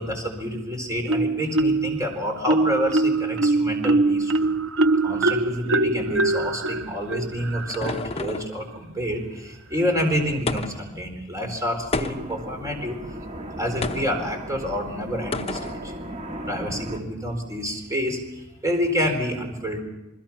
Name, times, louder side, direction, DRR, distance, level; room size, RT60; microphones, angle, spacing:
voice 1, 0.0-4.5 5.0-13.2 13.6-15.9 16.5-19.8, equal, 15° right, 4 dB, 4.2 m, -28 dB
Marimba xylophone, 1.1-2.0 2.5-8.0, right 2 dB, 85° right, 0.7 m, -22 dB
sound 1, 7.0-8.6 10.5-11.0 11.9-12.5 13.8-14.2 15.3-15.8, left 3 dB, 30° left, 0.9 m, -30 dB
sound 2, 11.9-17.0, right 1 dB, 35° right, 2.1 m, -36 dB
29.0 x 21.0 x 5.9 m, 1.0 s
head